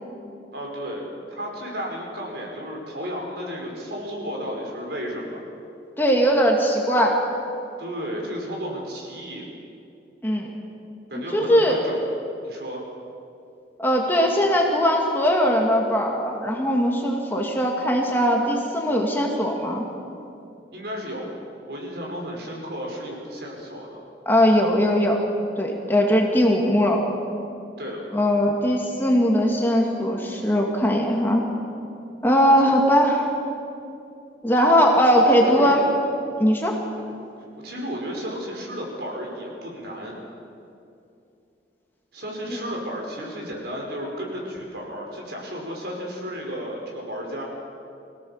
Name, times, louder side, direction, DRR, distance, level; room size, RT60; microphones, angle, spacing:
voice 1, 0.5-5.4 7.8-9.4 11.1-12.0 12.4-12.9 20.7-21.3 21.7-24.0 27.8-28.0 32.4-32.8 35.2-35.8 36.9-37.1 37.5-40.2 42.1-47.4, equal, 70° right, -1 dB, 5.2 m, -33 dB
voice 2, 6.0-7.2 10.2-10.5 11.3-11.8 13.8-19.8 24.3-25.2 25.6-27.0 28.1-31.4 32.2-33.2 34.4-35.8 36.4-36.8, equal, 10° left, 0 dB, 2.1 m, -20 dB
25.0 x 17.0 x 7.3 m, 2.6 s
head